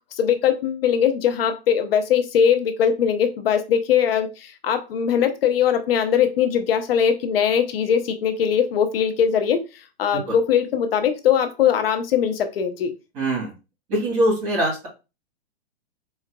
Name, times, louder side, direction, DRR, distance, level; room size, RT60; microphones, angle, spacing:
voice 1, 0.2-12.9, left 8 dB, 60° left, 7 dB, 0.9 m, -21 dB
voice 2, 13.1-13.5 13.9-14.9, right 1 dB, 25° right, -4 dB, 2.4 m, -23 dB
4.5 x 3.5 x 2.3 m, 0.28 s
hypercardioid pair, 170°, 32 cm